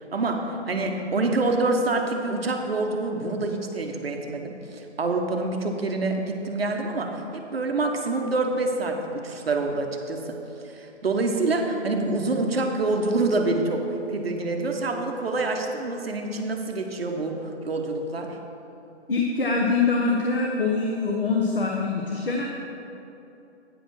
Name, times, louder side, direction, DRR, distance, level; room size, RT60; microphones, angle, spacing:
voice 1, 0.1-10.4 10.6-18.4, right 2 dB, 55° right, 3 dB, 0.9 m, -26 dB
voice 2, 19.1-22.5, left 4 dB, 50° left, 0 dB, 0.9 m, -24 dB
9.2 x 5.0 x 6.1 m, 2.9 s
hypercardioid pair, 170°, 35 cm